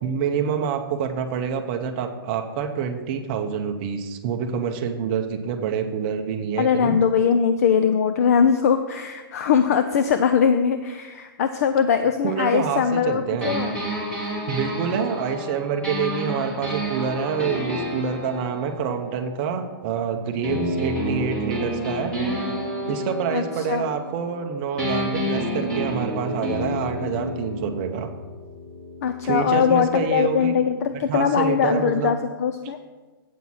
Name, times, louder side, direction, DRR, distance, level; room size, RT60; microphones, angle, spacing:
voice 1, 0.0-7.0 12.2-13.6 14.5-22.1 22.9-28.1 29.2-30.6 31.1-32.1, right 7 dB, 25° right, 4 dB, 0.6 m, -27 dB
voice 2, 6.6-13.8 23.3-23.8 29.0-32.8, left 7 dB, 40° left, 9 dB, 0.4 m, -21 dB
sound 1, 13.4-19.9 20.4-24.5 24.8-30.5, equal, 10° left, 1.5 m, -30 dB
8.3 x 5.6 x 6.1 m, 1.3 s
hypercardioid pair, 170°, 12 cm